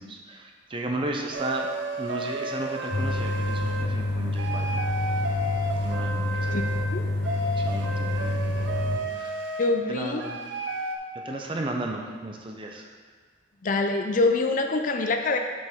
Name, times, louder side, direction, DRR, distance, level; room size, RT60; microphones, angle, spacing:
voice 1, 0.0-1.7 2.0-4.8 5.8-6.5 7.6-9.6 9.9-10.4 11.1-12.9, right 2 dB, 30° right, 2 dB, 0.6 m, -34 dB
sound 1, 1.3-3.9 4.4-6.9 7.2-9.7 10.2-11.0, right 2 dB, 75° right, 0.6 m, -32 dB
sound 2, 2.9-9.0, left 2 dB, 70° left, 1.0 m, -28 dB
voice 2, 6.5-7.0 9.6-10.2 13.6-15.4, left 3 dB, 45° left, 5 dB, 0.4 m, -25 dB
7.4 x 5.2 x 3.6 m, 1.5 s
head